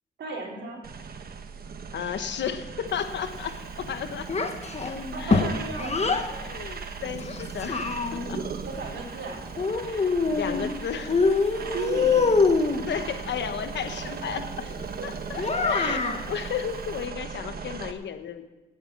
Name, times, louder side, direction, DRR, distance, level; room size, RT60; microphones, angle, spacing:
voice 1, 0.2-0.8 5.1-6.4 8.6-9.4 11.7-12.2 14.6-15.1 15.3-16.2, right 4 dB, 80° right, -1 dB, 3.3 m, -36 dB
sound 1, 0.8-17.9, right 5 dB, 55° right, 1.2 m, -38 dB
voice 2, 1.9-4.3 4.9-5.5 6.3-8.4 9.8-11.2 12.9-14.7 15.0-16.0 16.3-18.5, left 8 dB, 80° left, 9 dB, 1.1 m, -33 dB
Child speech kid speaking, 4.3-6.3 7.2-8.4 9.6-10.7 11.1-12.8 15.4-16.2, left 4 dB, 35° left, 1.4 m, -24 dB
17.0 x 8.8 x 6.0 m, 1.1 s
cardioid pair, 70°, 18 cm